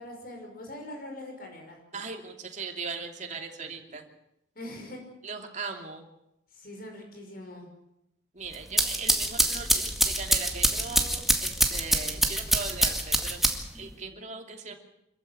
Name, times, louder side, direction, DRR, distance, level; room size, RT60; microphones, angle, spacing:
voice 1, 0.0-1.8 4.6-5.0 5.6-5.7 6.5-7.7, left 1 dB, 50° left, 2 dB, 5.8 m, -42 dB
voice 2, 1.9-4.1 5.2-6.1 8.3-13.5 13.7-14.8, right 4 dB, 40° right, 3 dB, 2.9 m, -39 dB
sound 1, 8.5-13.8, right 1 dB, ahead, 2.0 m, -25 dB
26.0 x 15.0 x 9.1 m, 0.85 s
head